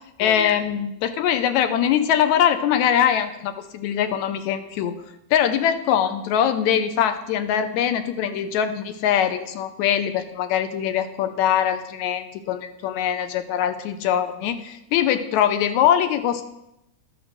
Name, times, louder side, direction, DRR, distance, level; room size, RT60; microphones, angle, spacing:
voice 1, 0.2-4.9 5.3-16.4, left 9 dB, 80° left, 9 dB, 2.0 m, -22 dB
12.0 x 6.3 x 6.2 m, 0.86 s
omnidirectional pair, 3.5 m